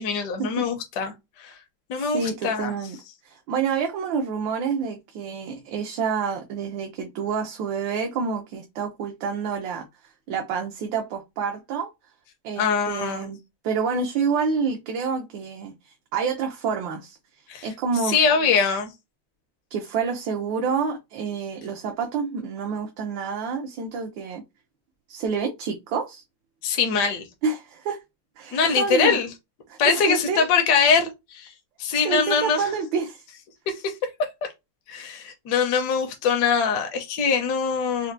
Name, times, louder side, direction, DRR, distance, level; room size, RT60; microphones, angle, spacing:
voice 1, 0.0-1.6 1.9-2.7 12.6-13.3 17.5-17.7 18.1-18.9 26.6-27.3 28.5-29.3 29.8-31.5 31.8-32.7 33.7-33.9 34.9-38.1, left 6 dB, 70° left, 1.2 m, -23 dB
voice 2, 2.0-3.0 3.2-9.8 10.3-11.9 12.4-13.4 13.6-17.2 17.6-18.2 19.7-24.4 25.1-26.2 27.4-28.0 28.4-29.2 29.7-30.5 32.0-33.2, right 5 dB, 85° right, 1.4 m, -28 dB
4.4 x 2.1 x 2.5 m
omnidirectional pair, 2.0 m